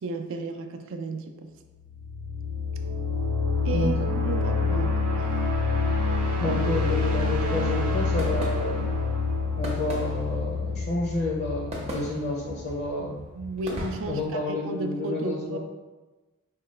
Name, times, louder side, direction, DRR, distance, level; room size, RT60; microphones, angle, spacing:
voice 1, 0.0-1.5 3.6-5.3 13.0-14.2 14.5-15.6, right 3 dB, 60° right, 6 dB, 0.4 m, -33 dB
sound 1, 1.7-12.5, left 3 dB, 85° right, 0.7 m, -27 dB
voice 2, 6.4-8.9 9.6-13.2 14.1-15.6, left 2 dB, 45° left, -3 dB, 0.5 m, -30 dB
sound 2, 8.1-14.2, equal, 30° right, 0.7 m, -39 dB
4.6 x 2.2 x 3.1 m, 1.2 s
head